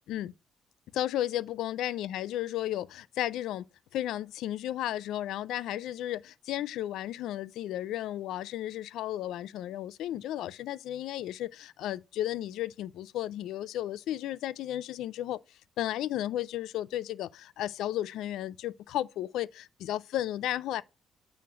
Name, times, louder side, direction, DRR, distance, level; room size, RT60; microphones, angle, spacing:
voice 1, 0.9-3.6 3.9-15.4 15.8-20.8, left 13 dB, 85° left, 0.3 m, -34 dB
9.1 x 3.2 x 5.0 m
cardioid pair, 90°, 0 cm